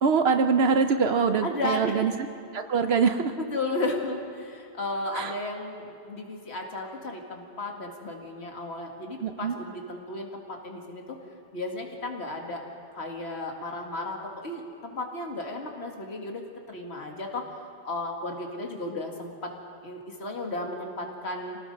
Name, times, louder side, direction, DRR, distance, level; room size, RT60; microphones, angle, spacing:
voice 1, 0.0-2.3 2.5-3.4 5.1-5.3 9.2-9.6, right 5 dB, 75° right, 6 dB, 1.0 m, -24 dB
voice 2, 1.4-1.9 3.4-11.2 11.5-12.6 12.9-17.5 17.8-19.5 19.8-21.6, left 2 dB, 85° left, 1 dB, 2.2 m, -34 dB
27.5 x 19.0 x 5.3 m, 2.6 s
omnidirectional pair, 1.1 m